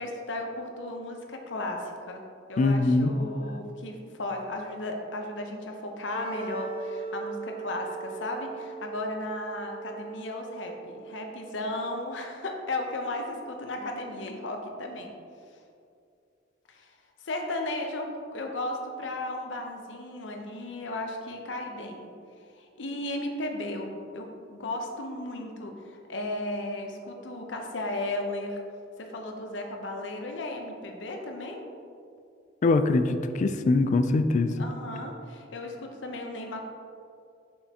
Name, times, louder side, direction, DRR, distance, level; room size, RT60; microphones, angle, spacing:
voice 1, 0.0-2.2 2.5-15.1 16.7-16.9 17.2-22.1 22.6-28.6 29.0-31.6 34.6-36.6, left 1 dB, 75° left, 2 dB, 0.8 m, -35 dB
voice 2, 2.6-3.1 32.6-34.5, left 3 dB, 40° left, 9 dB, 0.3 m, -23 dB
Wind instrument woodwind instrument, 6.1-11.2, right 5 dB, 30° right, 0.5 m, -39 dB
6.4 x 5.6 x 2.8 m, 2.4 s
head